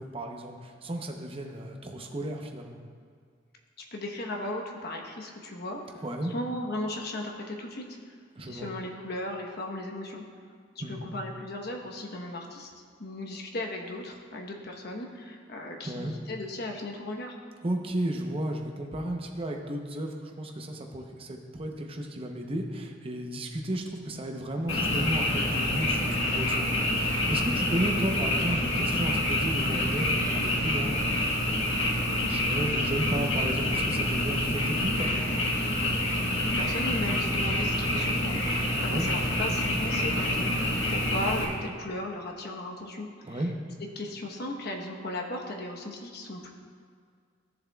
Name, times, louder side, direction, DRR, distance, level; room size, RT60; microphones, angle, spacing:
voice 1, 0.0-2.8 6.0-6.3 8.4-8.7 10.8-11.1 15.8-16.1 17.6-31.4 32.2-35.3 38.8-39.1 43.2-43.5, right 1 dB, 30° right, 2 dB, 0.8 m, -34 dB
voice 2, 3.9-5.8 6.3-7.8 8.5-10.2 10.9-12.7 13.0-17.4 36.2-43.5 44.0-46.5, left 1 dB, 55° left, 1 dB, 1.0 m, -36 dB
Frog, 24.7-41.4, left 1 dB, 75° left, 1.5 m, -27 dB
14.0 x 7.0 x 2.3 m, 2.1 s
head